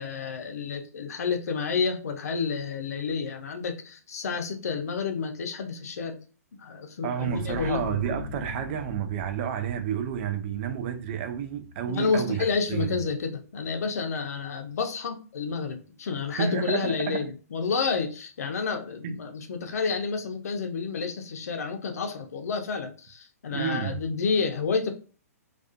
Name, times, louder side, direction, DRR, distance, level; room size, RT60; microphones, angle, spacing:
voice 1, 0.0-6.2 6.6-7.9 11.9-24.9, left 5 dB, 70° left, 0.5 m, -30 dB
voice 2, 7.0-13.0 16.3-17.2 19.0-19.1 23.5-24.0, right 8 dB, 40° right, 0.4 m, -30 dB
sound 1, 7.2-12.7, left 2 dB, 30° left, 0.7 m, -41 dB
2.4 x 2.3 x 2.4 m
hypercardioid pair, 135°, 9 cm